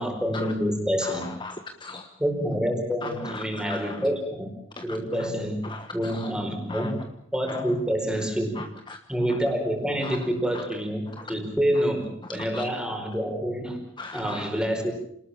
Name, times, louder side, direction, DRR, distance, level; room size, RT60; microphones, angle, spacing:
voice 1, 0.0-1.3 2.2-4.5 4.8-5.7 5.9-7.0 7.3-8.7 9.1-13.8 14.1-14.9, equal, 5° right, 3 dB, 4.7 m, -27 dB
voice 2, 1.0-2.1 3.0-4.0 4.8-5.0 5.6-6.3 6.7-6.9 7.5-7.6 8.6-9.0 10.0-10.2 10.5-10.6 11.2-11.3 12.3-12.6 14.0-14.5, left 3 dB, 25° left, 6 dB, 1.2 m, -38 dB
27.5 x 19.5 x 7.2 m, 0.69 s
head